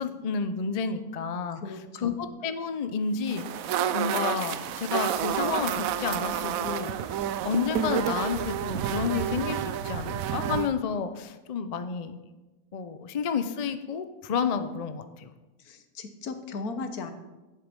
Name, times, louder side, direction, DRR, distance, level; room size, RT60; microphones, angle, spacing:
voice 1, 0.0-3.6 3.9-6.9 7.4-12.2 12.7-15.3, left 6 dB, 45° left, 9 dB, 0.5 m, -30 dB
voice 2, 1.6-2.2 15.7-17.1, left 4 dB, 80° left, 8 dB, 1.5 m, -37 dB
sound 1, 3.3-10.7, right 9 dB, 75° right, 1.0 m, -29 dB
10.5 x 7.8 x 5.3 m, 1.1 s
omnidirectional pair, 1.6 m